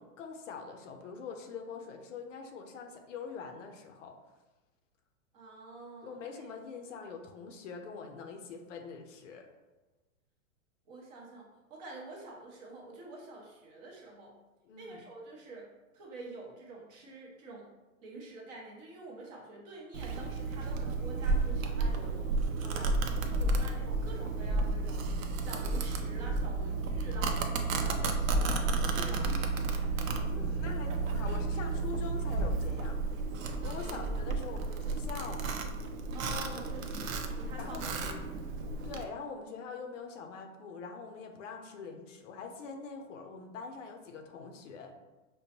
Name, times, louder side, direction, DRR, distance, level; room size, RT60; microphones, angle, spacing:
voice 1, 0.0-4.1 6.0-9.5 14.6-15.0 22.6-23.0 30.0-33.0 33.6-35.7 37.6-38.2 38.8-44.9, left 5 dB, 60° left, 4 dB, 0.6 m, -44 dB
voice 2, 5.3-6.2 6.9-7.0 10.9-14.3 14.8-17.7 18.0-22.2 22.7-22.9 23.2-25.0 25.4-29.4 33.6-34.1 36.1-38.1, right 2 dB, 30° right, -2 dB, 0.7 m, -47 dB
Domestic sounds home sounds, 19.9-39.0, right 3 dB, 70° right, 0.6 m, -32 dB
5.3 x 2.1 x 2.8 m, 1.1 s
hypercardioid pair, 150°, 41 cm